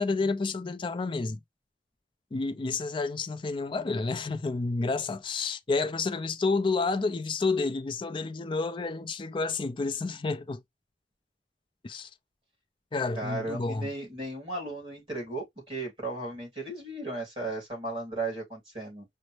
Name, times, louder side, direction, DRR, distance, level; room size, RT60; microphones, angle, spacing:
voice 1, 0.0-1.4 2.3-10.6 11.8-12.1 12.9-13.9, left 3 dB, 30° left, 0.4 m, -30 dB
voice 2, 13.1-19.0, right 2 dB, 30° right, 3.3 m, -35 dB
5.1 x 2.0 x 3.0 m
head